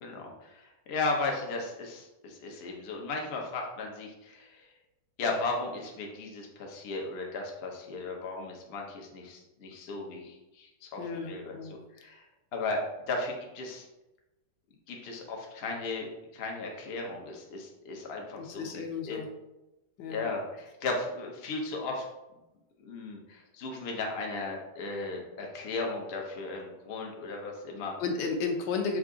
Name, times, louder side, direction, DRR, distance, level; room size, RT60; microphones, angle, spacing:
voice 1, 0.0-4.7 5.2-12.2 12.5-13.9 14.9-19.2 20.1-22.1 22.8-27.9, left 3 dB, 60° left, 1 dB, 0.6 m, -36 dB
voice 2, 11.0-11.7 18.4-19.3 20.0-20.3 28.0-29.0, left 4 dB, 80° left, 3 dB, 1.3 m, -33 dB
4.7 x 2.4 x 3.7 m, 0.98 s
omnidirectional pair, 1.9 m